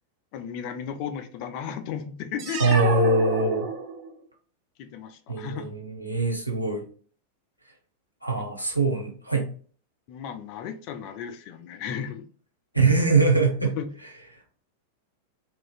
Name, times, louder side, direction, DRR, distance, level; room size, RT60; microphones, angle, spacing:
voice 1, 0.3-2.6 4.8-5.7 8.3-8.4 10.1-12.3 13.8-13.9, left 8 dB, 45° left, 8 dB, 0.4 m, -35 dB
sound 1, 2.4-4.2, right 4 dB, 40° right, 0.6 m, -30 dB
voice 2, 2.6-3.7 5.3-6.9 8.2-9.5 12.7-13.8, right 3 dB, 90° right, 2 dB, 0.7 m, -23 dB
2.9 x 2.6 x 2.3 m, 0.43 s
figure-of-eight pair, 90°, 0 cm